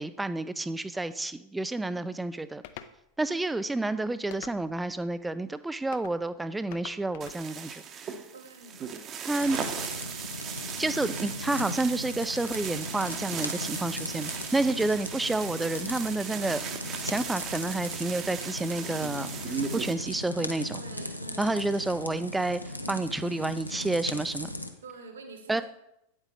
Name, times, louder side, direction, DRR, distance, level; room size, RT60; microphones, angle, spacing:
voice 1, 0.0-2.6 3.2-8.1 9.2-9.6 10.8-16.6 17.0-20.8 21.4-22.6 22.9-24.5 25.5-25.6, right 2 dB, 5° right, 13 dB, 0.4 m, -30 dB
sound 1, 2.6-3.0 4.3-4.9 5.9-6.2 6.7-7.4, left 11 dB, 50° left, 0.5 m, -45 dB
sound 2, 7.2-19.9, right 7 dB, 30° right, 0.8 m, -37 dB
voice 2, 8.3-8.9 20.7-21.6 24.8-25.6, right 3 dB, 65° right, 6 dB, 1.4 m, -46 dB
sound 3, 9.4-24.7, left 1 dB, 90° left, 0.7 m, -38 dB
8.9 x 8.4 x 3.4 m, 0.81 s
figure-of-eight pair, 90°, 0 cm